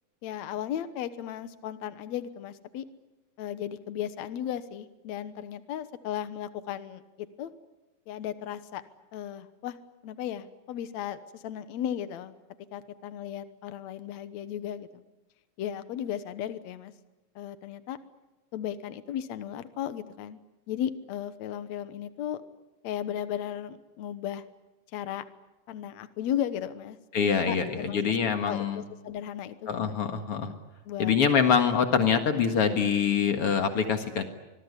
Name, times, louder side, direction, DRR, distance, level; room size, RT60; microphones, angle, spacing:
voice 1, 0.2-2.9 3.4-7.5 8.1-8.8 9.1-9.8 10.0-12.3 12.7-15.0 15.6-16.9 17.4-18.0 18.5-20.4 20.7-22.4 22.8-24.4 24.9-25.2 25.7-30.0 30.9-31.2, left 10 dB, 70° left, 12 dB, 2.4 m, -35 dB
voice 2, 27.1-28.8 29.7-30.5 31.0-34.2, left 6 dB, 55° left, 7 dB, 2.5 m, -25 dB
25.5 x 21.0 x 9.8 m, 1.0 s
omnidirectional pair, 3.3 m